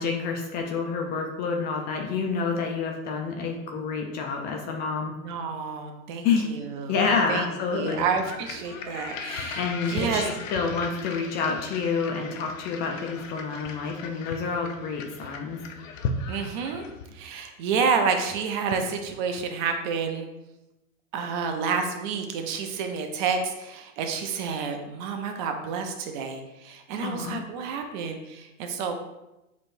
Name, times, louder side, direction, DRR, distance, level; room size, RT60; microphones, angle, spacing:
voice 1, 0.0-5.1 6.2-6.5 6.9-8.0 9.6-15.6 27.0-27.4, left 5 dB, 25° left, 1 dB, 0.5 m, -28 dB
voice 2, 5.2-6.9 7.3-7.5 7.7-10.2 16.3-16.8 17.1-20.3 21.1-29.0, right 5 dB, 35° right, 5 dB, 0.5 m, -29 dB
sound 1, 7.9-17.2, left 4 dB, 65° left, 0.7 m, -37 dB
6.7 x 3.1 x 2.6 m, 0.96 s
hypercardioid pair, 115°, 42 cm